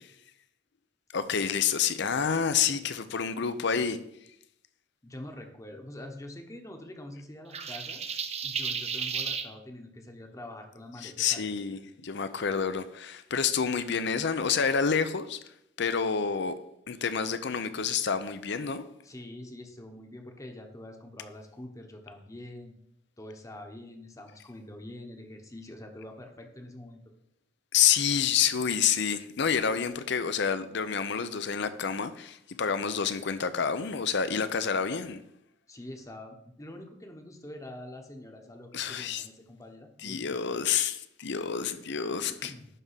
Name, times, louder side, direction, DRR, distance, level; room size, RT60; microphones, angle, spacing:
voice 1, 1.1-4.0 11.0-15.4 15.8-16.6 16.9-18.8 27.7-35.2 38.7-39.2 40.0-42.5, left 7 dB, 60° left, 0.6 m, -28 dB
voice 2, 5.0-8.0 8.4-11.5 19.0-22.7 23.2-27.0 35.7-40.8 42.1-42.7, left 1 dB, 15° left, 1.0 m, -45 dB
sound 1, 7.5-9.5, right 6 dB, 35° right, 0.6 m, -33 dB
11.0 x 3.7 x 5.7 m
head